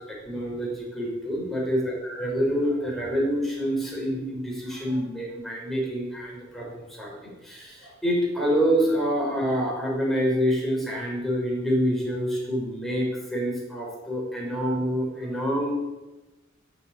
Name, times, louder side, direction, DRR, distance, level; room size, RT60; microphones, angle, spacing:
voice 1, 0.1-15.7, equal, ahead, -4 dB, 5.9 m, -27 dB
16.0 x 8.4 x 9.1 m, 1.1 s
head